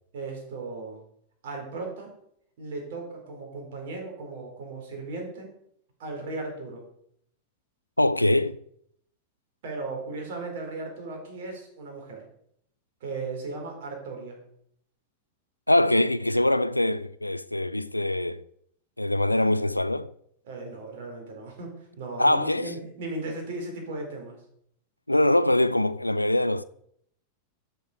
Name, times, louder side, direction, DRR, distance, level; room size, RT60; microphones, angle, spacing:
voice 1, 0.1-1.0 1.4-2.1 2.6-5.5 6.0-6.8 9.6-12.2 13.0-14.4 20.4-24.4, right 3 dB, 55° right, 4.1 m, -36 dB
voice 2, 8.0-8.6 15.7-18.4 19.0-20.1 22.2-22.7 25.1-26.6, left 1 dB, 85° left, 0.3 m, -23 dB
13.0 x 7.1 x 4.9 m
figure-of-eight pair, 90°, 0 cm